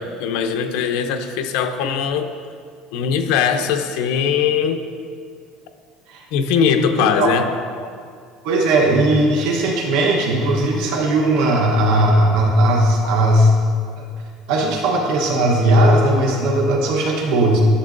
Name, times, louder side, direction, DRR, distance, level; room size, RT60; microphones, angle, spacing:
voice 1, 0.0-2.3 2.9-4.9 6.3-7.5 13.0-13.2, left 7 dB, 80° left, 7 dB, 0.6 m, -20 dB
voice 2, 6.6-7.4 8.4-13.5 14.5-17.6, right 1 dB, 70° right, 0 dB, 1.0 m, -17 dB
11.0 x 6.5 x 2.5 m, 2.2 s
cardioid pair, 165°, 0 cm